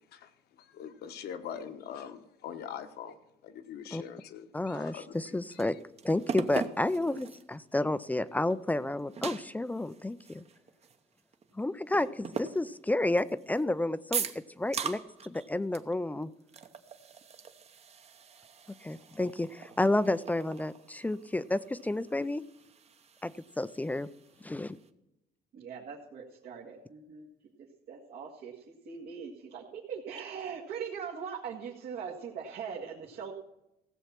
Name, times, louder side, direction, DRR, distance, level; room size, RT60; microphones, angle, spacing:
voice 1, 0.6-3.2 3.4-5.1 5.5-5.7, left 8 dB, 70° left, 9 dB, 1.2 m, -43 dB
voice 2, 4.5-5.8 6.0-10.4 11.5-14.3 14.6-16.3 18.8-22.4 23.2-24.1 24.4-24.8, left 2 dB, 10° left, 16 dB, 0.4 m, -31 dB
sound 1, 5.1-7.5 8.0-8.1 8.5-11.5 11.9-13.6 14.1-15.5 15.7-15.9 16.2-24.9, right 6 dB, 40° right, 0.9 m, -41 dB
voice 3, 25.5-27.3 27.9-33.3, right 6 dB, 70° right, -4 dB, 1.9 m, -41 dB
16.0 x 7.2 x 5.8 m, 0.90 s
cardioid pair, 110°, 17 cm